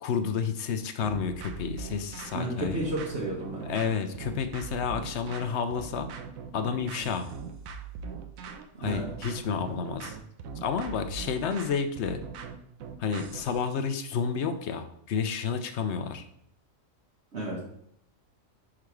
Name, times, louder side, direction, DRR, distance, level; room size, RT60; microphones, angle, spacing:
voice 1, 0.0-2.8 3.7-6.1 6.5-7.3 8.8-10.2 10.6-12.2 13.0-16.3, left 6 dB, 60° left, 9 dB, 0.9 m, -30 dB
sound 1, 1.0-13.7, right 5 dB, 90° right, 1.1 m, -41 dB
voice 2, 2.3-3.7 8.7-9.1 17.3-17.6, right 1 dB, 55° right, -4 dB, 1.3 m, -32 dB
5.9 x 3.8 x 4.7 m, 0.72 s
omnidirectional pair, 1.4 m